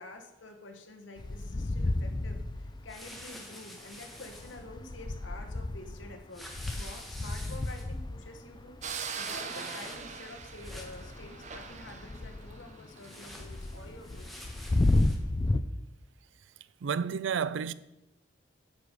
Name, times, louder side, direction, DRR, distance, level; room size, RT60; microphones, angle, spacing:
voice 1, 0.0-14.3, left 2 dB, 75° left, 1.4 m, -48 dB
sound 1, 1.2-3.2 3.9-9.6 10.0-15.6, left 2 dB, 25° left, 0.4 m, -32 dB
sound 2, 2.9-4.6 6.3-7.9 9.1-10.2 10.5-11.1 13.0-15.2, equal, ahead, 1.2 m, -48 dB
sound 3, 8.8-13.3, right 6 dB, 40° right, 0.8 m, -41 dB
voice 2, 16.8-17.7, right 6 dB, 70° right, 0.4 m, -30 dB
9.2 x 5.2 x 6.6 m
head